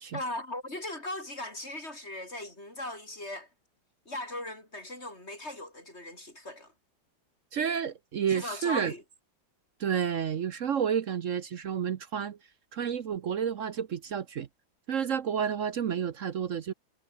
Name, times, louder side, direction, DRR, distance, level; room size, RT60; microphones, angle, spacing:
voice 1, 0.1-3.5 4.1-6.7 8.3-9.0, left 1 dB, 30° left, 7.1 m, -38 dB
voice 2, 7.5-8.9 9.8-12.4 12.7-14.5 14.9-16.7, right 8 dB, 55° right, 0.9 m, -30 dB
omnidirectional pair, 2.2 m